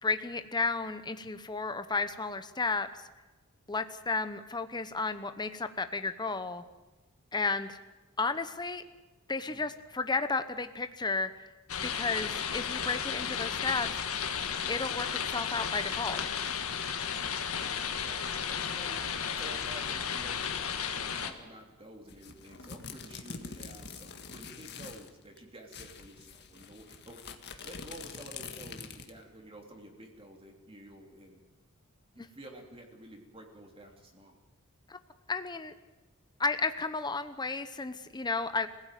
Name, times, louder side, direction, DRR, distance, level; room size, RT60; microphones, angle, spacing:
voice 1, 0.0-2.9 3.7-6.6 7.3-7.8 8.2-8.8 9.3-11.5 11.8-13.9 14.7-16.2 32.2-32.3 34.9-35.0 35.3-35.7 36.4-38.7, left 4 dB, 20° left, 10 dB, 0.9 m, -33 dB
sound 1, 11.7-21.3, left 7 dB, 80° left, 1.8 m, -34 dB
voice 2, 17.9-19.0 19.3-20.5 21.0-31.4 32.1-34.4, right 1 dB, 25° right, 2 dB, 3.2 m, -50 dB
sound 2, 22.1-25.1 25.4-25.5 25.7-29.2, left 5 dB, 50° left, 1.8 m, -45 dB
26.0 x 16.5 x 9.3 m, 1.2 s
head